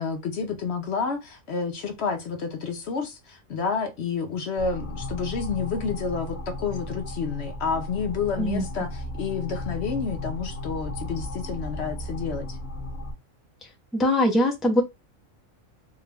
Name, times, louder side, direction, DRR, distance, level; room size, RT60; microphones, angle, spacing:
voice 1, 0.0-12.6, left 5 dB, 60° left, 0.9 m, -30 dB
sound 1, 4.6-13.1, left 1 dB, 40° left, 1.1 m, -35 dB
voice 2, 13.9-14.8, left 1 dB, ahead, 0.6 m, -22 dB
3.6 x 2.4 x 3.3 m
omnidirectional pair, 1.3 m